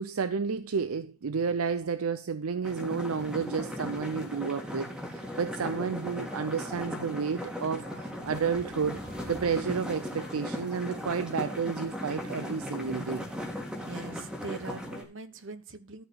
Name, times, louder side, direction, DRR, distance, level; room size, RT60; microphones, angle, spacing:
voice 1, 0.0-13.2, right 5 dB, 75° right, 0.5 m, -31 dB
sound 1, 2.6-15.0, left 1 dB, 5° right, 2.4 m, -38 dB
sound 2, 5.2-12.5, left 1 dB, 50° left, 1.9 m, -53 dB
sound 3, 8.1-10.8, right 1 dB, 40° right, 1.4 m, -50 dB
voice 2, 13.8-16.0, right 3 dB, 60° right, 1.2 m, -42 dB
13.5 x 4.9 x 6.3 m
head